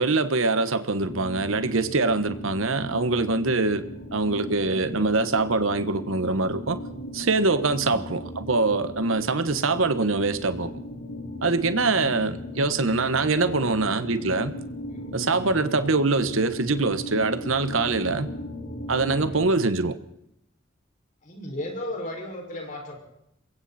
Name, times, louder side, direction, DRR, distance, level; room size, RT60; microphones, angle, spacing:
voice 1, 0.0-6.8 7.1-10.7 11.4-14.5 15.1-18.3 18.9-20.0, right 3 dB, 90° right, 1.4 m, -24 dB
sound 1, 1.0-19.5, left 1 dB, 70° left, 4.6 m, -37 dB
voice 2, 4.6-5.1 11.8-12.2 13.4-13.7 14.9-15.7 19.1-19.5 21.2-23.0, left 1 dB, 40° left, 5.9 m, -37 dB
27.0 x 22.5 x 4.3 m
head